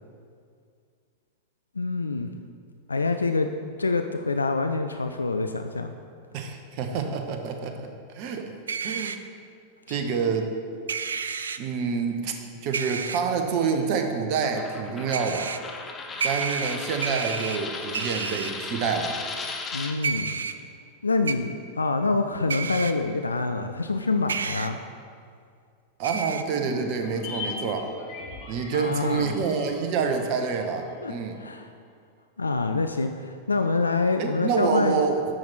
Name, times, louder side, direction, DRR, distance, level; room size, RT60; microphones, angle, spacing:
voice 1, 1.8-2.3 2.9-3.5 3.8-5.9 9.9-10.2 19.7-20.3 21.0-24.8 28.7-29.3 31.0-31.7 32.4-35.0, left 3 dB, 80° left, 7 dB, 0.3 m, -26 dB
voice 2, 6.3-7.9 8.1-8.5 8.8-9.2 9.9-10.5 11.6-12.4 12.6-15.5 16.2-19.1 26.0-27.9 28.5-31.4 34.2-35.2, right 5 dB, 45° right, 5 dB, 0.7 m, -27 dB
sound 1, 8.7-9.2 10.9-11.6 12.7-13.2 15.1-15.6 16.2-17.6 17.9-18.5 20.0-20.5 21.3-21.4 22.5-22.9 24.3-24.7 26.0-26.4, right 6 dB, 70° right, 0.3 m, -30 dB
Coin (dropping), 14.4-19.9, left 4 dB, 20° left, 0.7 m, -36 dB
sound 2, 26.5-31.0 31.2-31.3, left 3 dB, 50° left, 1.3 m, -38 dB
8.7 x 5.9 x 4.2 m, 2.2 s
figure-of-eight pair, 90°, 0 cm